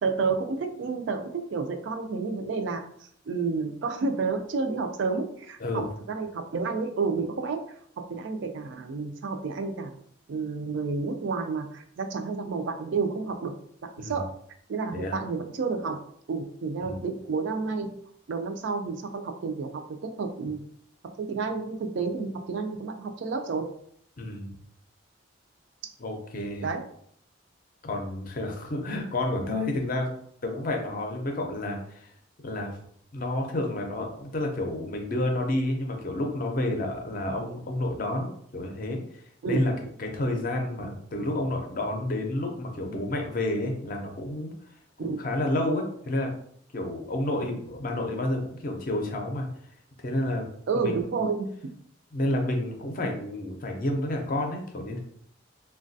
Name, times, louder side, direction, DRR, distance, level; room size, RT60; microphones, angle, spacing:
voice 1, 0.0-2.8 3.3-7.6 8.1-10.0 10.3-13.5 13.8-14.3 14.7-16.0 16.3-17.9 18.3-20.6 21.2-23.7 26.6-26.8 39.4-39.6 45.0-45.2 50.7-51.5, right 4 dB, 65° right, 6 dB, 0.3 m, -30 dB
voice 2, 5.6-5.9 14.0-14.2 14.9-15.2 16.8-17.0 24.2-24.5 26.0-26.7 27.8-30.1 30.4-32.1 32.4-32.8 33.1-39.0 39.5-39.7 40.0-44.5 45.0-46.3 46.7-49.5 50.0-50.5 50.7-51.0 52.1-55.0, left 1 dB, 45° left, 3 dB, 0.5 m, -30 dB
3.2 x 2.2 x 2.6 m, 0.66 s
head